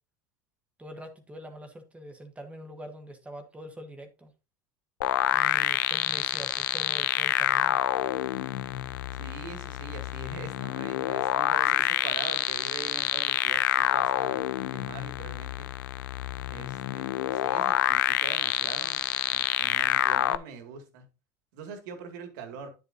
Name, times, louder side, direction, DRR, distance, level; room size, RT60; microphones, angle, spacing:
voice 1, 0.8-4.3 5.3-7.8, equal, 10° right, 1.5 m, -44 dB
sound 1, 5.0-20.4, left 14 dB, 80° left, 0.5 m, -27 dB
voice 2, 9.2-14.5 14.7-15.7 16.5-19.0 19.3-21.0 21.5-22.7, right 5 dB, 75° right, 2.2 m, -43 dB
9.5 x 8.0 x 2.7 m
hypercardioid pair, 95°, 10 cm